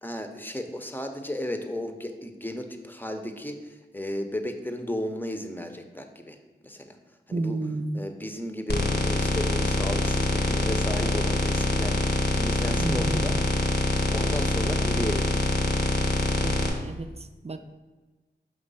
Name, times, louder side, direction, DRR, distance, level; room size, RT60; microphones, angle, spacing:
voice 1, 0.0-6.4 6.6-7.0 7.3-7.6 7.9-12.0 12.3-13.4 14.1-15.3, left 1 dB, 10° left, 5 dB, 0.7 m, -34 dB
voice 2, 7.3-8.0 12.8-13.3 16.4-17.6, right 2 dB, 35° right, 9 dB, 0.5 m, -31 dB
sound 1, 8.7-16.7, left 2 dB, 65° left, 1.1 m, -25 dB
6.1 x 3.2 x 5.5 m, 1.2 s
cardioid pair, 45°, 19 cm